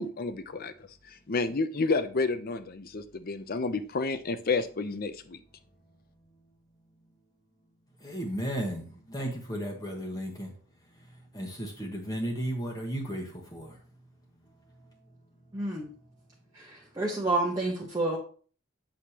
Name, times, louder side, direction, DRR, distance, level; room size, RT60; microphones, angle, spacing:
voice 1, 0.0-5.4, left 3 dB, 45° left, 11 dB, 0.6 m, -30 dB
voice 2, 8.0-10.5 10.9-13.8, equal, 15° left, -1 dB, 1.3 m, -35 dB
voice 3, 15.5-15.9 16.5-18.2, right 2 dB, 15° right, -3 dB, 1.1 m, -29 dB
8.2 x 6.4 x 2.9 m, 0.41 s
head